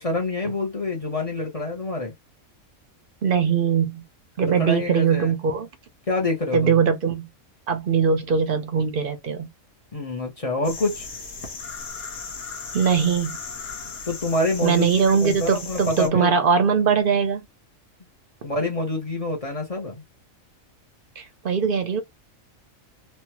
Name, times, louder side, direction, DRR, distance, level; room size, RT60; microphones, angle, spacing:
voice 1, 0.0-2.1 4.4-5.3 6.1-6.8 9.9-11.1 14.1-16.3 18.4-20.0, left 2 dB, 35° left, 0.7 m, -26 dB
voice 2, 3.2-4.0 4.4-5.7 6.5-7.3 7.7-9.5 12.7-13.4 14.6-17.4 21.2-22.0, right 6 dB, 55° right, 0.7 m, -21 dB
sound 1, 10.6-16.1, left 4 dB, 55° left, 1.0 m, -36 dB
3.2 x 2.3 x 2.8 m
omnidirectional pair, 1.4 m